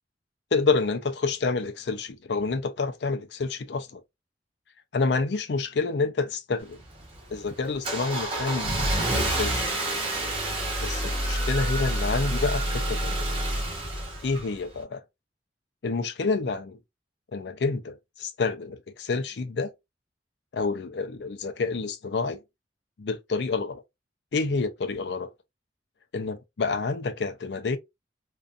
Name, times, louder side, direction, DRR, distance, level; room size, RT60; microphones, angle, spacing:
voice 1, 0.5-4.0 4.9-6.8 7.3-8.9 9.2-9.7 10.8-13.2 13.5-13.6 14.2-15.0 15.8-16.8 17.3-19.7 20.5-22.4 23.0-23.8 24.3-25.3 26.1-27.8, left 4 dB, 75° left, 0.5 m, -28 dB
Car / Engine starting, 6.6-14.8, right 1 dB, 30° right, 1.0 m, -28 dB
2.5 x 2.3 x 2.4 m
head